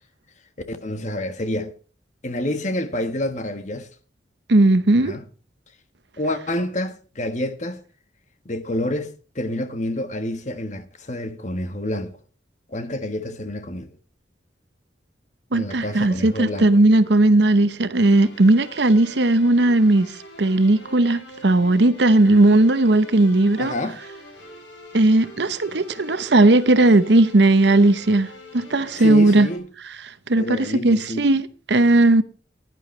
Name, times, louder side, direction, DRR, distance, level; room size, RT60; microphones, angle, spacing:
voice 1, 0.7-1.7 2.2-3.9 5.0-5.2 6.2-7.8 8.4-12.1 12.7-13.9 15.5-16.7 23.6-24.0 29.0-29.7 30.4-31.3, left 1 dB, 40° left, 1.4 m, -28 dB
voice 2, 4.5-5.2 15.5-20.1 20.4-23.7 24.9-29.5 30.3-32.2, right 2 dB, 70° right, 0.9 m, -17 dB
sound 1, 18.0-29.6, equal, 85° left, 4.9 m, -43 dB
16.0 x 11.0 x 3.2 m
head